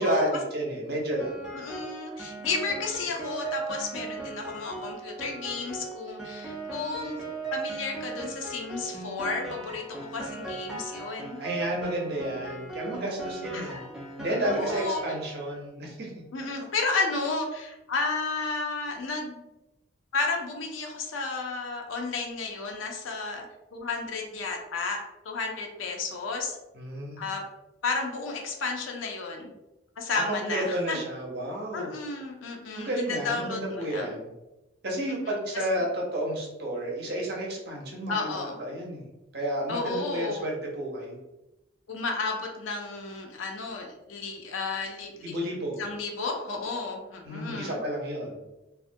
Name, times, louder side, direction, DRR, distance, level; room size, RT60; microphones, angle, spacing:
voice 1, 0.0-1.5 11.4-13.8 14.2-16.1 26.7-27.2 30.1-31.9 32.7-34.3 34.8-39.0 39.3-41.2 45.2-45.8 47.2-48.4, right 1 dB, 50° right, -2 dB, 0.6 m, -31 dB
Piano, 1.2-15.6, right 3 dB, 5° right, 0.3 m, -38 dB
voice 2, 1.5-7.2 7.5-11.4 13.5-13.9 14.5-15.0 16.3-19.5 20.1-23.4 23.7-26.6 27.2-27.5 27.8-29.5 30.0-31.0 31.7-34.2 38.1-38.6 39.7-40.5 41.9-45.3 45.8-47.8, left 3 dB, 80° left, 2 dB, 0.4 m, -32 dB
2.3 x 2.1 x 2.5 m, 0.97 s
head